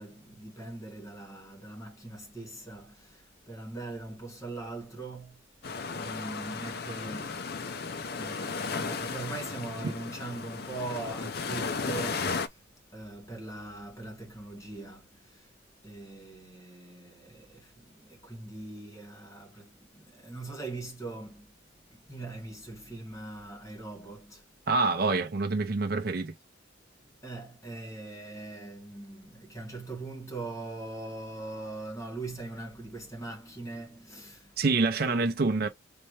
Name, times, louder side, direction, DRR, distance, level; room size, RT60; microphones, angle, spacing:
voice 1, 0.0-5.4 5.9-7.8 8.1-12.6 12.9-15.5 15.8-21.5 21.9-24.4 27.2-34.6 35.1-35.3, right 2 dB, 15° left, 1.7 m, -41 dB
sound 1, 5.6-12.5, left 4 dB, 55° left, 0.5 m, -35 dB
voice 2, 24.7-26.3 34.6-35.7, right 3 dB, 50° right, 0.6 m, -26 dB
4.2 x 3.3 x 3.1 m
head